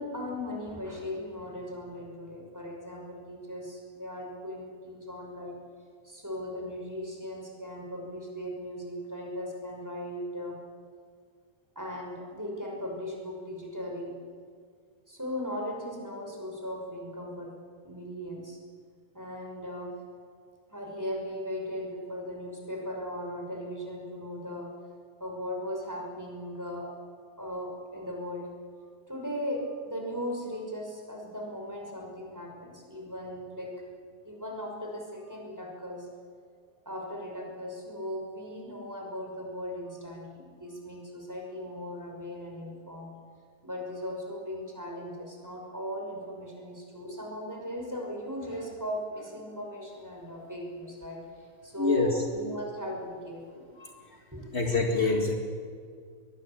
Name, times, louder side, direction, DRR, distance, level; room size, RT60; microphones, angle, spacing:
voice 1, 0.0-5.6 6.0-10.6 11.8-14.1 15.1-17.5 17.8-18.6 19.1-19.9 20.7-24.7 25.2-26.9 27.4-28.5 29.1-33.7 34.2-36.1 36.9-43.1 43.6-53.6 54.3-54.6, equal, 5° right, 0 dB, 5.3 m, -38 dB
voice 2, 51.8-52.2 53.8-54.2 54.5-55.3, left 3 dB, 55° left, 2 dB, 0.7 m, -26 dB
23.0 x 21.5 x 8.8 m, 2.1 s
omnidirectional pair, 4.7 m